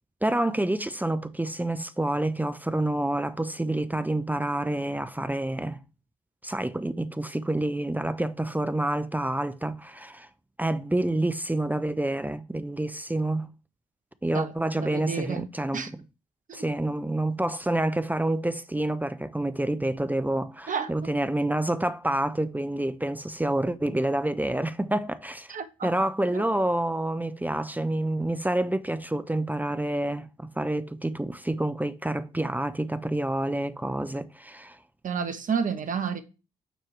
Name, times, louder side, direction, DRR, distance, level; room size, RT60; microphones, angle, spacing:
voice 1, 0.2-5.8 6.4-10.3 10.6-13.5 14.2-16.0 16.5-25.5 25.8-34.8, right 1 dB, 10° right, 0.7 m, -28 dB
voice 2, 14.3-15.5 15.7-15.9 16.5-16.6 20.7-20.9 25.5-25.9 26.3-26.4 35.0-36.2, right 6 dB, 50° right, 1.2 m, -31 dB
9.2 x 4.5 x 3.4 m
hypercardioid pair, 40°, 17 cm